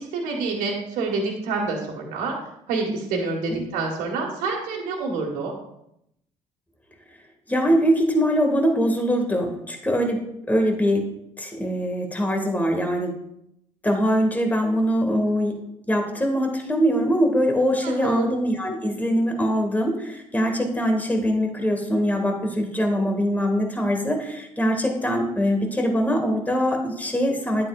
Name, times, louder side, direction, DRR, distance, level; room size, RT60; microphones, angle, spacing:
voice 1, 0.0-2.4 2.7-5.5 17.8-18.3, right 3 dB, 70° right, -1 dB, 1.9 m, -27 dB
voice 2, 7.5-11.1 11.4-13.2 13.8-15.6 15.9-27.7, equal, 10° left, 2 dB, 2.3 m, -23 dB
11.0 x 8.6 x 2.6 m, 0.78 s
hypercardioid pair, 60°, 15 cm